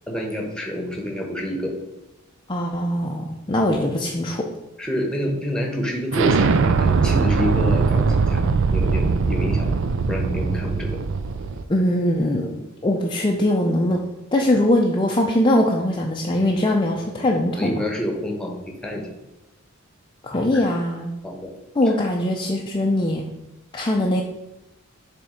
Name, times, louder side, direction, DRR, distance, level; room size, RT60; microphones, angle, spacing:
voice 1, 0.1-1.8 4.8-8.4 8.7-9.8 10.1-11.0 17.5-19.1 20.5-20.6 21.2-21.5, equal, 5° left, 1 dB, 1.1 m, -28 dB
voice 2, 2.5-4.4 11.7-14.0 14.3-17.8 20.2-21.1 21.8-23.3 23.7-24.2, left 1 dB, 20° left, 0 dB, 0.5 m, -21 dB
Explosion, 6.1-11.6, right 4 dB, 60° right, 0.5 m, -20 dB
7.0 x 3.5 x 5.0 m, 0.98 s
head